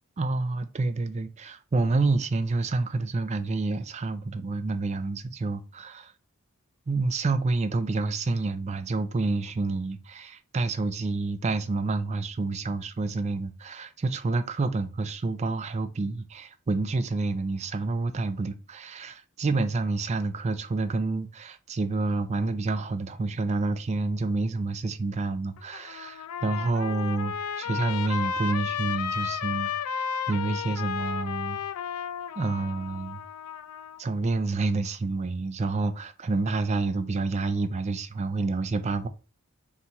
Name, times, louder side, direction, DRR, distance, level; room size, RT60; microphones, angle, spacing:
voice 1, 0.2-6.1 6.9-31.6 32.4-33.2 34.0-39.1, right 3 dB, 30° right, 0.3 m, -28 dB
Trumpet, 25.6-34.0, left 7 dB, 80° left, 0.3 m, -33 dB
4.3 x 2.5 x 4.0 m
head